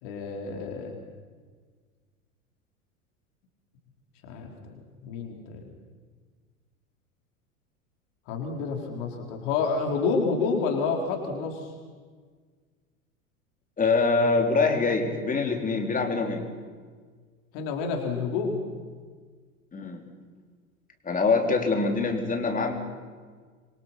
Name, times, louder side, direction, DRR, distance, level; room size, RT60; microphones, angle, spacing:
voice 1, 0.0-0.9 4.3-4.8 5.0-5.6 8.3-11.7 17.5-18.6, left 4 dB, 55° left, 2 dB, 4.2 m, -29 dB
voice 2, 13.8-16.5 19.7-20.0 21.0-22.7, left 4 dB, 20° left, 3 dB, 4.0 m, -24 dB
26.0 x 24.5 x 6.0 m, 1.5 s
figure-of-eight pair, 85°, 42 cm